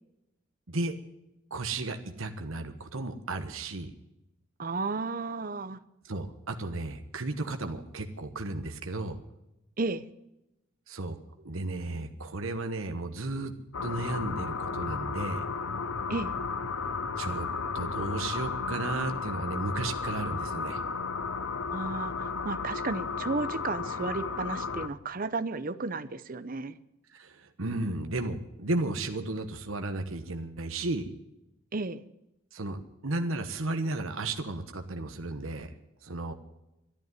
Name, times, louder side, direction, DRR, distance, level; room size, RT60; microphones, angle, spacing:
voice 1, 1.5-3.9 6.0-9.2 10.9-13.5 13.8-15.5 17.2-17.5 17.7-20.8 27.1-31.1 32.5-35.7 36.0-36.3, right 2 dB, 75° right, 6 dB, 1.3 m, -34 dB
voice 2, 4.6-5.8 9.8-10.0 16.1-16.3 21.7-26.8 31.7-32.0, right 3 dB, 40° right, 13 dB, 0.7 m, -33 dB
sound 1, 13.7-24.9, left 4 dB, 70° left, 0.9 m, -34 dB
12.5 x 11.0 x 9.1 m, 0.90 s
head